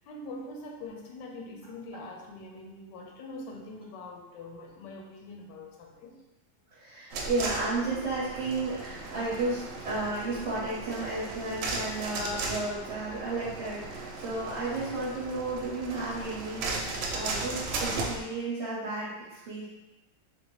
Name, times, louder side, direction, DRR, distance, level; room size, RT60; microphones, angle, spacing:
voice 1, 0.0-6.2, left 2 dB, 75° left, 1 dB, 1.2 m, -43 dB
voice 2, 6.7-19.7, right 2 dB, 45° right, -11 dB, 1.0 m, -33 dB
sound 1, 7.1-18.2, right 3 dB, 85° right, 1.3 m, -36 dB
3.9 x 2.1 x 3.0 m, 1.0 s
omnidirectional pair, 1.9 m